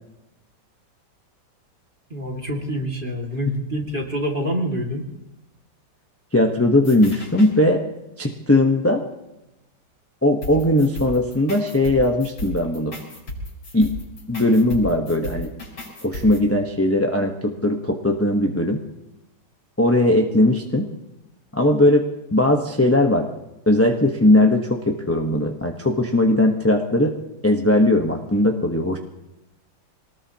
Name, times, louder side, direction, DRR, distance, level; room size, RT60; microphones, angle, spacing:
voice 1, 2.1-5.1, equal, 30° right, 0 dB, 2.4 m, -26 dB
voice 2, 6.3-7.8 8.2-9.0 10.2-13.0 13.7-13.9 14.3-15.5 16.0-18.8 19.8-20.9 21.5-22.1 22.3-23.3 23.7-27.1 27.4-29.0, left 1 dB, 10° left, 2 dB, 0.7 m, -19 dB
sound 1, 6.8-7.5 10.4-16.4, left 1 dB, 85° left, 5.3 m, -34 dB
26.0 x 19.0 x 2.9 m, 0.94 s
omnidirectional pair, 2.0 m